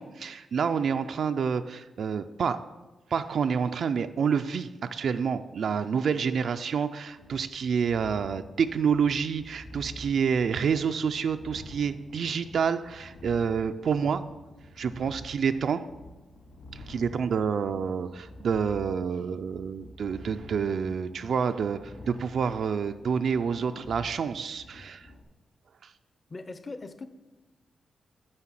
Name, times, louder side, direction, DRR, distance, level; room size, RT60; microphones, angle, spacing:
voice 1, 0.0-2.6 3.1-14.3 14.8-15.9 16.7-25.1 25.8-25.9, right 6 dB, 55° right, 9 dB, 0.4 m, -28 dB
sound 1, 7.1-25.2, left 1 dB, 65° left, 3.2 m, -48 dB
voice 2, 26.3-27.1, left 3 dB, 25° left, 11 dB, 0.6 m, -40 dB
9.7 x 6.4 x 7.6 m, 1.2 s
wide cardioid pair, 170°, 0 cm